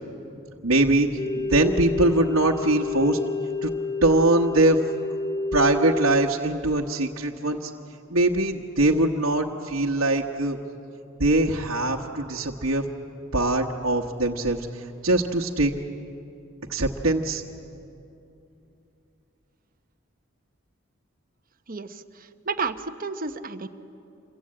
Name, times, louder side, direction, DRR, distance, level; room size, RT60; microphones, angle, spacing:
voice 1, 0.6-1.1 1.4-3.2 3.6-3.7 4.0-4.8 5.5-7.7 8.1-10.6 11.2-12.8 13.3-15.7 16.7-17.4, right 2 dB, 85° right, -2 dB, 1.2 m, -22 dB
sound 1, 1.2-6.3, left 3 dB, 20° left, 0.5 m, -29 dB
voice 2, 21.7-22.0 22.5-23.7, right 4 dB, 45° right, 9 dB, 1.0 m, -31 dB
27.5 x 23.0 x 8.7 m, 2.7 s
head